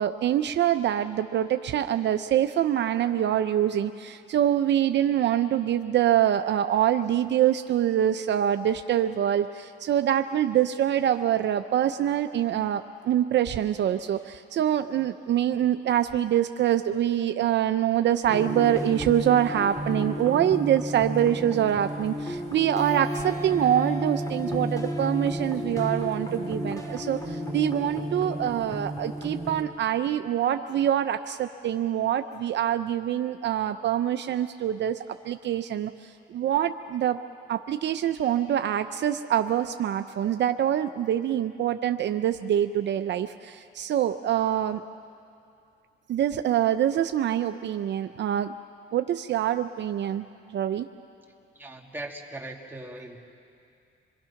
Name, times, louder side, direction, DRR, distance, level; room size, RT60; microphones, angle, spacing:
voice 1, 0.0-35.9 36.3-37.2 37.5-44.8 46.1-48.5 48.9-50.2 50.5-50.9, right 10 dB, 65° right, 8 dB, 0.6 m, -25 dB
sound 1, 18.3-29.6, equal, 15° left, 3.1 m, -32 dB
voice 2, 51.5-53.2, right 1 dB, 10° right, -1 dB, 2.6 m, -39 dB
26.5 x 22.0 x 5.9 m, 2.5 s
cardioid pair, 90°, 20 cm